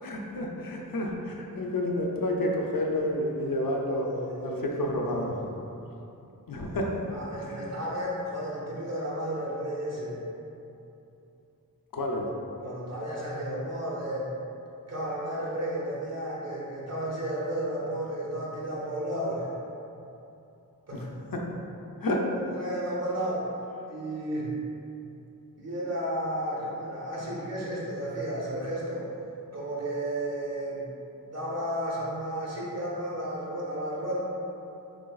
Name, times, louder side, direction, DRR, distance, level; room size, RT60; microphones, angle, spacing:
voice 1, 0.0-4.1 4.4-5.4 6.5-6.9 7.4-7.7 11.9-12.3 20.9-21.0 22.0-22.2, left 1 dB, 65° left, 0 dB, 0.5 m, -30 dB
voice 2, 3.9-4.7 5.3-5.5 7.1-10.2 12.6-14.3 14.9-19.5 20.9-21.0 22.3-23.5 23.9-24.5 25.6-29.1 29.5-30.9 31.2-34.2, right 1 dB, 45° right, -6 dB, 1.0 m, -33 dB
4.9 x 3.2 x 2.3 m, 2.8 s
wide cardioid pair, 75°, 37 cm